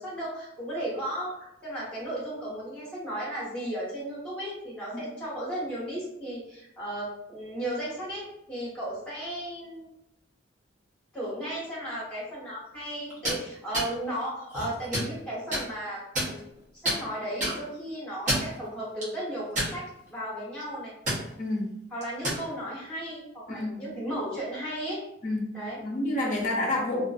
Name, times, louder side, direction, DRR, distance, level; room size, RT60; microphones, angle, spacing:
voice 1, 0.0-9.9 11.1-20.9 21.9-25.0 25.5-25.8 26.3-26.4, right 1 dB, 5° left, -8 dB, 1.2 m, -35 dB
sound 1, 13.1-13.4 13.7-13.9 14.5-15.1 15.5-15.6 16.1-16.6 16.8-17.0 17.4-17.6 18.1-18.5 19.0-19.1 19.5-20.1 20.4-20.6 21.1-21.2 22.0-22.4, right 1 dB, 40° right, 0.8 m, -28 dB
voice 2, 21.4-21.7 23.5-23.9 25.2-27.0, left 1 dB, 40° left, -1 dB, 0.5 m, -29 dB
2.4 x 2.4 x 2.4 m, 0.80 s
head